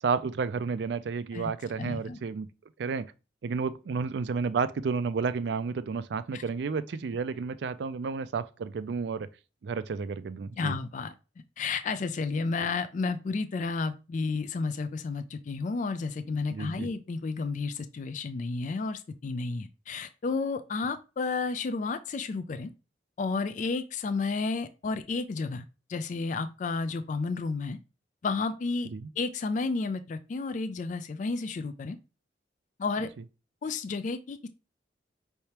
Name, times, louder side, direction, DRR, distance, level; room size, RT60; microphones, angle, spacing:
voice 1, 0.0-2.5 2.8-3.1 3.4-9.3 9.6-10.7 16.5-16.9 28.9-29.1, right 5 dB, 65° right, 0.4 m, -31 dB
voice 2, 1.8-2.2 6.3-6.4 10.6-11.1 11.6-22.7 23.2-25.6 25.9-27.8 28.2-28.9 29.2-32.0 32.8-33.1 33.6-34.5, left 4 dB, 45° left, 0.3 m, -31 dB
5.5 x 3.3 x 2.9 m
head